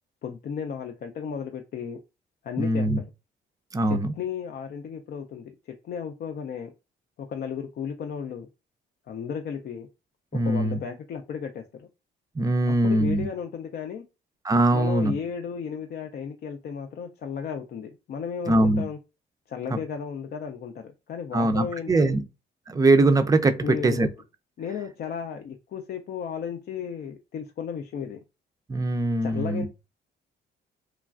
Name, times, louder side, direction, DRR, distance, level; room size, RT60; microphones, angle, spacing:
voice 1, 0.2-2.0 2.4-2.9 3.9-6.7 7.2-8.5 9.1-9.9 10.3-11.6 12.7-14.0 14.7-19.0 19.5-22.2 23.6-24.1 24.6-28.2 29.2-29.7, left 7 dB, 55° left, 0.4 m, -34 dB
voice 2, 2.6-3.0 3.7-4.1 10.3-10.8 12.4-13.3 14.4-15.1 18.5-18.8 19.7-19.8 21.3-22.2 22.7-24.1 28.7-29.7, right 2 dB, 20° right, 0.4 m, -22 dB
3.1 x 2.3 x 2.3 m
cardioid pair, 90°, 20 cm